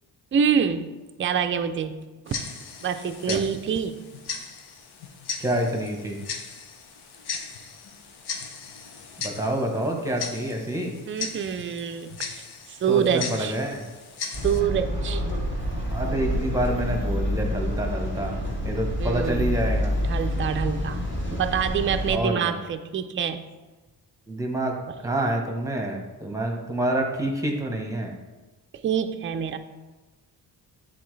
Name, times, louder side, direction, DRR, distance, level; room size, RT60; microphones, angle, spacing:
voice 1, 0.3-0.9 1.2-2.0 2.3-2.4 2.8-4.0 11.1-13.6 14.4-15.2 19.0-19.5 20.0-21.0 21.3-23.4 28.7-29.6, right 7 dB, 35° right, 8 dB, 0.4 m, -26 dB
Tick-tock, 2.3-14.6, left 5 dB, 75° left, 0.9 m, -37 dB
voice 2, 5.4-6.2 9.2-10.9 12.9-13.9 15.9-20.0 22.1-22.6 24.3-24.8 25.0-28.2, right 1 dB, 10° right, 2 dB, 0.9 m, -27 dB
sound 1, 14.3-22.2, equal, 30° left, 1.8 m, -28 dB
10.5 x 4.1 x 3.2 m, 1.2 s
wide cardioid pair, 150°, 39 cm